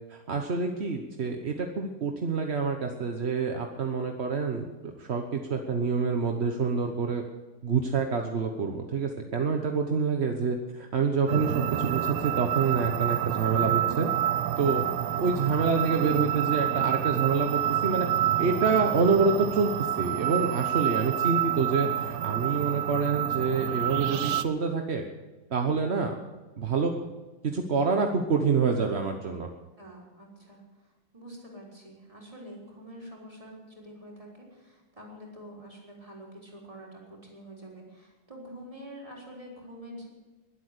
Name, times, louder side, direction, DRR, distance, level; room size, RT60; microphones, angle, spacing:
voice 1, 0.1-4.7 5.0-7.2 7.6-14.1 14.6-14.8 15.1-18.1 18.4-25.0 25.5-26.1 26.6-26.9 27.4-29.5, right 5 dB, 45° right, 4 dB, 0.9 m, -27 dB
sound 1, 11.3-24.4, right 12 dB, 70° right, 1.0 m, -28 dB
voice 2, 29.8-40.1, equal, 15° right, -3 dB, 3.9 m, -46 dB
21.0 x 8.4 x 6.7 m, 1.2 s
omnidirectional pair, 2.3 m